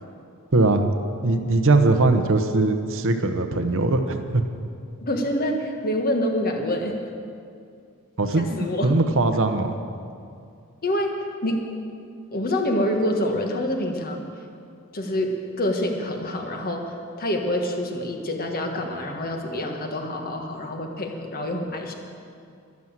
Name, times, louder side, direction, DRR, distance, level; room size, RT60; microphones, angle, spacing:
voice 1, 0.5-1.0 1.2-4.4 8.2-9.7, right 2 dB, 60° right, 7 dB, 1.0 m, -21 dB
voice 2, 5.0-6.9 8.4-8.9 10.8-11.6 12.3-14.2 14.9-21.9, left 1 dB, 45° left, 3 dB, 1.5 m, -26 dB
12.0 x 11.0 x 7.4 m, 2.4 s
head